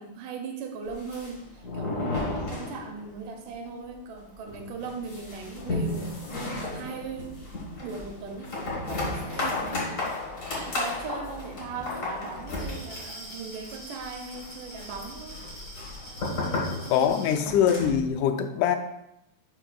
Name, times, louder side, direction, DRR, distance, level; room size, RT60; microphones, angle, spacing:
voice 1, 0.0-7.4 7.8-10.2 10.5-15.4 16.0-17.9, right 4 dB, 85° right, 4 dB, 2.4 m, -39 dB
sound 1, 0.9-3.2 3.5-3.6 3.9-4.0 4.5-18.1, left 2 dB, 55° left, 0.9 m, -34 dB
Glass, 12.4-17.4, right 1 dB, 30° left, 1.8 m, -45 dB
voice 2, 16.9-18.8, left 9 dB, 85° left, 7 dB, 2.0 m, -23 dB
10.0 x 5.0 x 2.3 m, 0.81 s
omnidirectional pair, 3.6 m